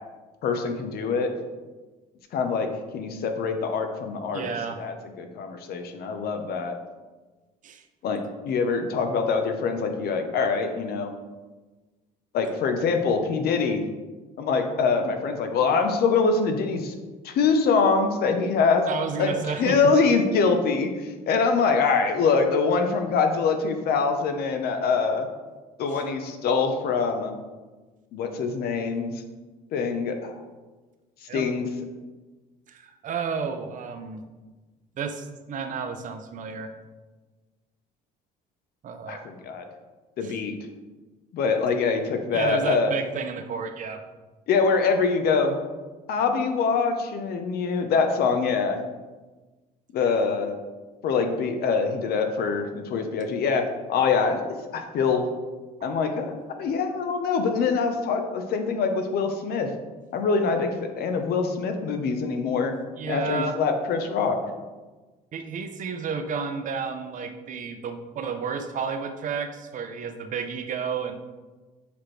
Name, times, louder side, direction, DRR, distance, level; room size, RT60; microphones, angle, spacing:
voice 1, 0.4-1.3 2.3-6.7 8.0-11.1 12.3-13.8 14.4-16.9 17.2-18.9 19.2-25.3 25.8-27.3 28.1-29.1 29.7-30.3 31.3-31.7 39.1-39.7 40.2-40.5 41.3-42.9 44.5-45.7 46.1-48.8 49.9-50.5 51.0-53.6 53.9-54.4 54.7-55.3 55.8-59.7 60.1-60.7 61.0-62.7 63.1-64.4, left 5 dB, 70° left, 6 dB, 0.8 m, -24 dB
voice 2, 4.3-4.8 7.6-7.8 18.9-19.9 25.9-26.0 31.3-31.5 32.7-34.2 35.0-36.7 38.8-39.2 40.2-40.4 42.3-44.0 63.0-63.6 65.3-71.1, right 5 dB, 50° right, 7 dB, 0.7 m, -31 dB
7.0 x 4.4 x 3.3 m, 1.3 s
cardioid pair, 110°, 17 cm